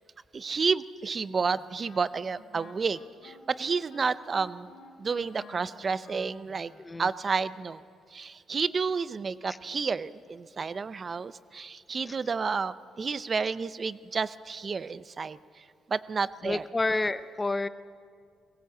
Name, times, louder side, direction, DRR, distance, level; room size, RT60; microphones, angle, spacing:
voice 1, 0.3-6.7 7.0-7.8 8.1-16.6, right 5 dB, 40° right, 16 dB, 0.6 m, -31 dB
Wind instrument woodwind instrument, 1.5-6.9, left 3 dB, 85° left, 3.2 m, -52 dB
voice 2, 6.8-7.1 9.5-9.6 12.0-12.2 16.4-17.7, left 2 dB, 20° left, 13 dB, 0.7 m, -30 dB
20.5 x 17.0 x 8.0 m, 2.2 s
cardioid pair, 90°, 0 cm